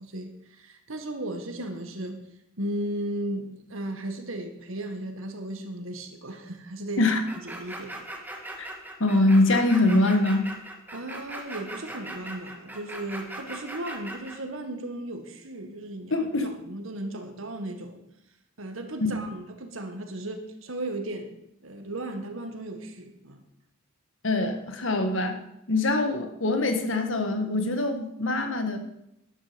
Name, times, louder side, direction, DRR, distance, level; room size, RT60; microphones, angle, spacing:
voice 1, 0.0-2.2 2.6-7.0 7.4-7.9 10.9-16.3 16.7-18.0 18.6-21.3 21.6-23.4, right 1 dB, 80° right, 5 dB, 1.8 m, -35 dB
sound 1, 7.3-14.4, right 1 dB, 10° right, 1.6 m, -39 dB
voice 2, 9.0-10.5 16.1-16.5 19.0-19.2 24.2-25.4 25.7-28.8, left 2 dB, 70° left, 6 dB, 1.7 m, -23 dB
12.5 x 11.0 x 5.3 m, 0.80 s
head